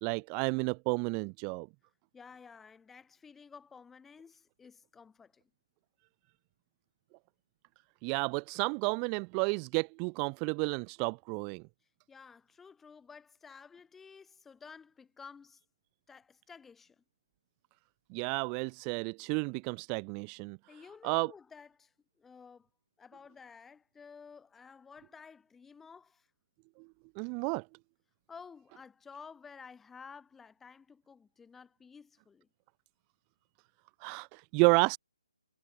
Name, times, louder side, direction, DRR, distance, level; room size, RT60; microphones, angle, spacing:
voice 1, 0.0-1.7 8.0-11.6 18.1-20.6 21.0-21.3 27.2-27.7 34.0-35.0, right 38 dB, 20° right, 0.3 m, -31 dB
voice 2, 2.1-5.5 12.1-15.6 16.1-17.0 20.7-22.7 23.0-26.3 28.3-32.5, left 5 dB, 5° left, 5.4 m, -53 dB
figure-of-eight pair, 140°, 3 cm